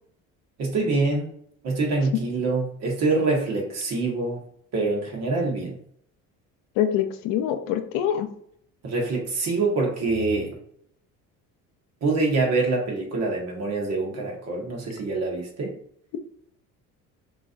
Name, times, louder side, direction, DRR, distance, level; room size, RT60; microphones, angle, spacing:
voice 1, 0.6-1.3 1.6-4.4 4.7-5.8 8.8-10.6 12.0-15.7, right 3 dB, 55° right, -1 dB, 1.7 m, -25 dB
voice 2, 6.8-8.3, left 10 dB, 80° left, 7 dB, 0.7 m, -24 dB
5.9 x 3.0 x 2.6 m, 0.67 s
cardioid pair, 110°, 32 cm